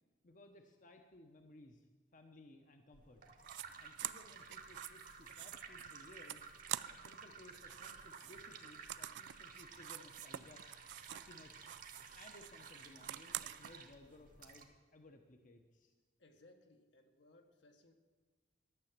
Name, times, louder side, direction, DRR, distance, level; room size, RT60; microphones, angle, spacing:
voice 1, 0.2-1.9 2.1-3.2 3.8-6.5 6.9-11.7 12.1-15.9, left 2 dB, 45° left, 5 dB, 0.8 m, -60 dB
sound 1, 2.9-14.6, right 5 dB, 50° right, 1.2 m, -54 dB
sound 2, 3.4-3.7 4.0-7.2 7.5-11.3 11.6-13.7, right 13 dB, 70° right, 0.3 m, -47 dB
voice 2, 16.2-17.9, left 2 dB, 80° left, 4 dB, 1.2 m, -64 dB
12.0 x 6.9 x 7.3 m, 1.3 s
head